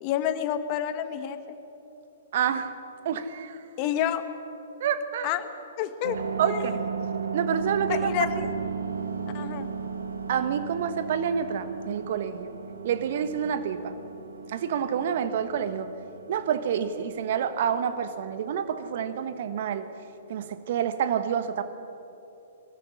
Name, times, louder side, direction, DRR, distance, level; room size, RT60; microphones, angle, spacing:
voice 1, 0.0-1.4 3.8-4.3 5.2-5.5 5.8-6.2 6.4-6.7 7.9-8.5 9.3-9.7, left 11 dB, 40° left, 10 dB, 1.6 m, -29 dB
voice 2, 2.3-2.7 3.0-3.6 4.8-5.3 6.4-6.8 7.3-8.1 10.3-12.5 12.8-14.0 14.5-15.9 16.3-19.9 20.3-21.6, right 8 dB, 55° right, 11 dB, 1.4 m, -28 dB
sound 1, 6.0-21.0, right 6 dB, 75° right, 1.4 m, -36 dB
22.0 x 14.0 x 9.8 m, 2.9 s
figure-of-eight pair, 120°, 0 cm